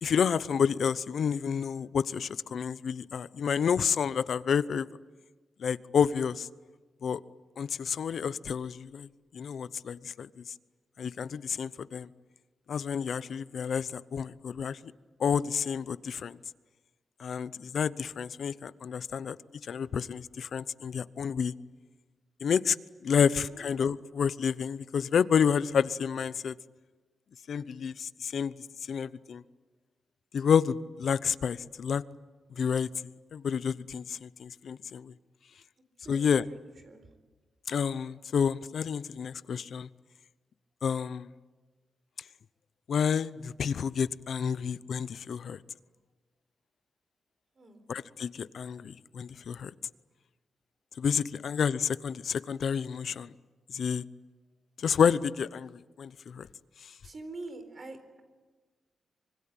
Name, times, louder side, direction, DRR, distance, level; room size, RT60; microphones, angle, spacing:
voice 1, 0.0-4.9 5.6-6.5 7.0-7.2 7.6-9.1 9.3-10.5 11.0-12.1 12.7-14.9 15.2-16.4 17.2-19.4 19.6-21.5 22.4-22.8 23.0-26.5 27.5-28.5 28.9-29.4 30.3-32.0 32.5-35.1 36.1-36.4 37.7-39.9 40.8-41.3 42.9-45.6 47.9-49.7 51.0-53.3 53.7-54.0 54.8-56.5 56.8-56.9, left 7 dB, 60° left, 16 dB, 0.8 m, -29 dB
voice 2, 23.1-23.7 36.0-36.6 36.8-37.1 47.5-47.8 57.0-58.2, right 2 dB, 40° right, 9 dB, 4.2 m, -45 dB
25.5 x 24.5 x 9.0 m, 1.3 s
wide cardioid pair, 135°, 0 cm